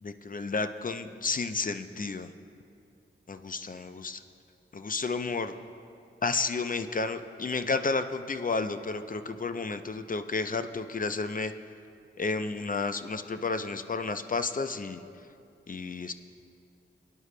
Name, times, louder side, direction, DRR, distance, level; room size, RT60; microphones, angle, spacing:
voice 1, 0.0-2.3 3.3-4.2 4.7-5.5 6.2-11.5 12.2-15.0 15.7-16.1, left 4 dB, 40° left, 9 dB, 0.6 m, -31 dB
20.0 x 9.9 x 2.2 m, 2.5 s
cardioid pair, 45°, 21 cm